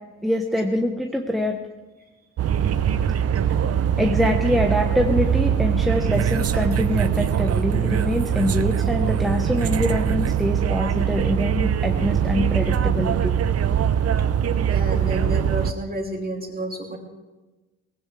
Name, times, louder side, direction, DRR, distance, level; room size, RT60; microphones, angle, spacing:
voice 1, 0.2-1.6 2.9-3.5 4.0-13.3, left 1 dB, ahead, 1 dB, 1.1 m, -24 dB
sound 1, 2.4-15.7, right 8 dB, 55° right, 0.8 m, -22 dB
voice 2, 14.7-17.0, right 1 dB, 30° right, 1 dB, 2.8 m, -30 dB
18.5 x 16.5 x 3.4 m, 1.2 s
cardioid pair, 90°, 30 cm